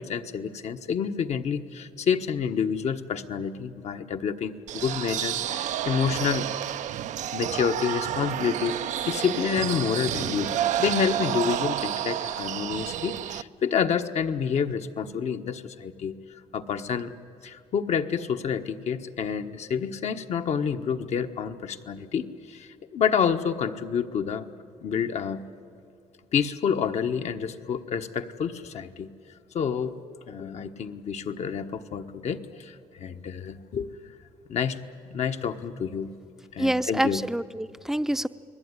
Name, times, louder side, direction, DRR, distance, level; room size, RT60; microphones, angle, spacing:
voice 1, 0.0-6.5 7.3-16.2 16.5-17.1 17.4-24.5 24.8-25.4 26.3-29.1 29.5-30.0 30.3-33.9 34.5-34.8 35.1-36.1 36.5-37.2, left 7 dB, 60° left, 7 dB, 1.4 m, -28 dB
sound 1, 4.7-13.4, right 11 dB, 70° right, 0.6 m, -30 dB
voice 2, 36.6-38.3, right 1 dB, 5° right, 12 dB, 0.7 m, -26 dB
30.0 x 20.5 x 9.8 m, 2.3 s
cardioid pair, 95°, 13 cm